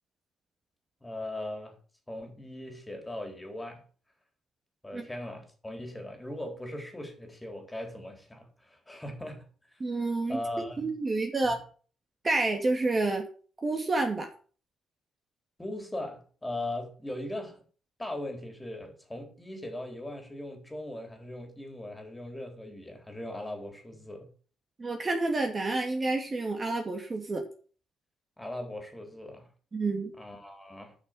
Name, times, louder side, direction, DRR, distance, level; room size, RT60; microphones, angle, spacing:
voice 1, 1.0-1.8 2.1-3.8 4.8-9.5 10.3-10.9 11.4-11.6 15.6-17.6 18.0-24.3 28.4-29.5 30.2-30.9, left 1 dB, 10° left, 4.0 m, -39 dB
voice 2, 9.8-10.4 10.8-11.6 12.2-13.3 13.6-14.3 24.8-27.4 29.7-30.1, right 2 dB, 30° right, 2.5 m, -29 dB
11.0 x 6.5 x 7.7 m
cardioid pair, 90°, 0 cm